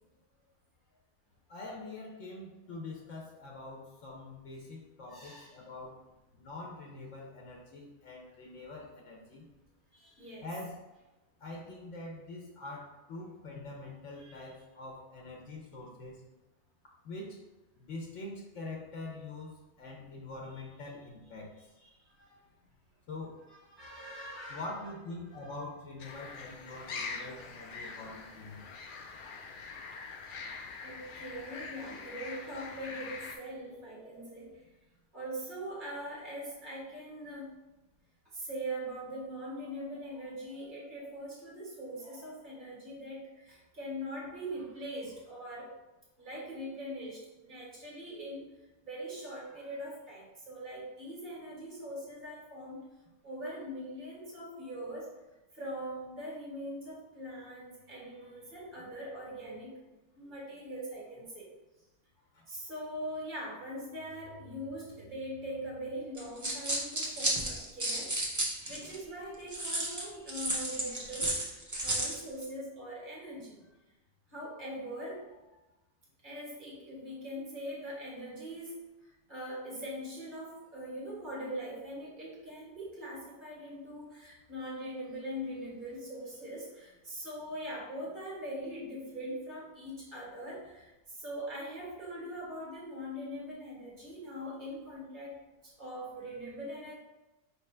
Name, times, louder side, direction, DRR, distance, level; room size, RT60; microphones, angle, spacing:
voice 1, 1.5-6.0 6.3-9.5 10.4-10.7 11.4-16.2 17.0-17.4 17.8-21.5 23.1-23.4 24.5-28.6 62.3-62.4 96.2-96.4, left 2 dB, 85° left, -1 dB, 1.1 m, -44 dB
voice 2, 5.1-5.6 9.9-10.5 14.2-14.5 21.8-21.9 22.2-22.4 23.5-24.7 25.3-25.5 26.1-26.5 27.0-27.6 30.8-34.5 35.1-37.5 38.3-45.7 46.2-48.5 48.8-52.8 53.2-55.1 55.5-59.7 60.1-61.5 62.5-71.4 71.8-73.6 74.3-75.3 76.2-78.9 79.3-90.9 91.2-96.9, equal, 40° right, -5 dB, 1.6 m, -42 dB
sound 1, 26.0-33.4, left 4 dB, 60° left, 0.6 m, -44 dB
sound 2, 66.2-69.0 69.5-72.2, right 1 dB, 20° right, 0.5 m, -33 dB
4.6 x 3.1 x 3.2 m, 1.0 s
omnidirectional pair, 1.2 m